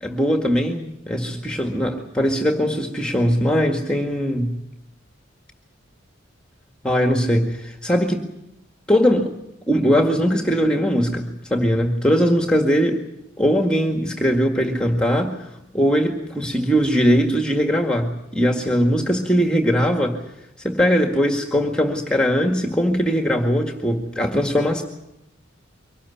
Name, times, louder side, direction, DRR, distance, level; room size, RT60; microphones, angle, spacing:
voice 1, 0.0-4.6 6.8-8.3 8.9-9.3 9.7-13.0 13.4-15.5 15.7-20.2 20.6-24.8, equal, 5° left, 3 dB, 1.8 m, -20 dB
24.0 x 18.5 x 8.5 m, 0.86 s
head